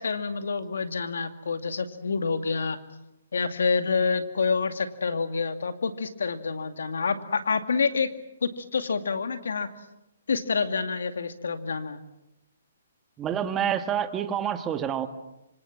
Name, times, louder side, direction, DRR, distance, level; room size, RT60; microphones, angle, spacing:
voice 1, 0.0-2.8 3.3-8.1 8.4-9.7 10.3-12.0, left 5 dB, 80° left, 9 dB, 2.4 m, -27 dB
voice 2, 13.2-15.1, right 9 dB, 15° right, 9 dB, 1.7 m, -27 dB
26.5 x 25.5 x 7.5 m, 0.91 s
hypercardioid pair, 155°, 0 cm